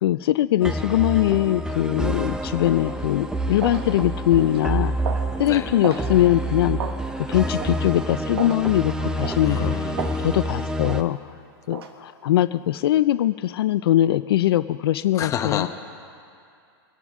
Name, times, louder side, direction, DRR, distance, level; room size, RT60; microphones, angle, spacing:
voice 1, 0.0-5.0 5.4-6.8 7.3-9.8 10.2-11.3 11.7-15.7, left 13 dB, 75° left, 13 dB, 0.4 m, -21 dB
sound 1, 0.6-11.0, right 1 dB, 5° right, 0.7 m, -28 dB
sound 2, 2.9-3.0 3.6-3.9 4.4-4.6 5.0-5.3 5.8-6.1 6.8-7.0 7.6-7.8 8.4-8.6 9.2-9.5 10.0-10.2 10.8-11.0 11.7-11.9, right 6 dB, 85° right, 1.4 m, -32 dB
voice 2, 9.4-10.4 15.2-15.7, left 9 dB, 25° left, 5 dB, 1.1 m, -29 dB
24.5 x 10.5 x 3.6 m, 2.4 s
hypercardioid pair, 125°, 13 cm